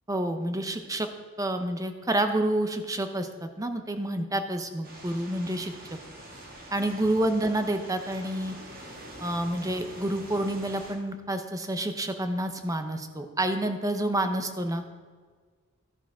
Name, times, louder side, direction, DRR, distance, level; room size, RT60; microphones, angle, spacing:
voice 1, 0.1-1.1 1.4-5.7 6.7-8.5 9.2-14.8, right 1 dB, 15° right, 7 dB, 0.8 m, -28 dB
sound 1, 4.8-10.9, right 1 dB, 45° right, 2.1 m, -45 dB
13.5 x 10.5 x 3.6 m, 1.5 s
head